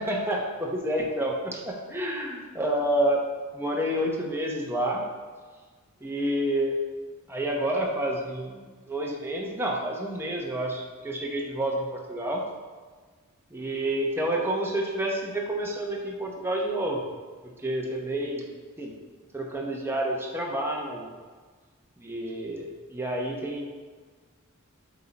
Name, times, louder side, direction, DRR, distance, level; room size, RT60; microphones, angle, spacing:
voice 1, 0.0-3.2 3.5-5.0 6.0-6.8 7.3-12.5 13.5-17.0 17.6-18.5 18.8-18.9 19.3-21.1 22.0-23.7, right 1 dB, 10° right, -1 dB, 1.0 m, -29 dB
8.3 x 3.8 x 4.1 m, 1.5 s
head